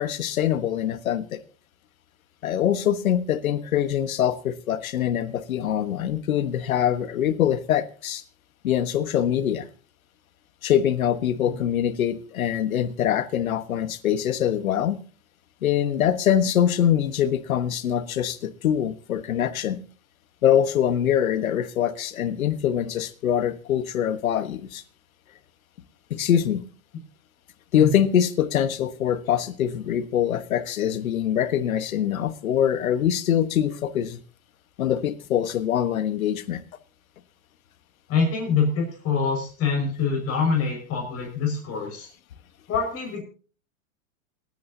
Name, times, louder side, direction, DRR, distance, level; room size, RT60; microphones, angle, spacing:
voice 1, 0.0-1.4 2.4-8.2 8.6-9.7 10.6-15.0 15.6-19.8 20.4-24.8 26.1-26.6 27.7-34.2 34.8-36.6, left 10 dB, 90° left, 13 dB, 1.4 m, -24 dB
voice 2, 38.1-42.1 42.7-43.2, left 5 dB, 35° left, 1 dB, 5.5 m, -25 dB
28.5 x 9.6 x 2.8 m, 0.39 s
hypercardioid pair, 130°, 41 cm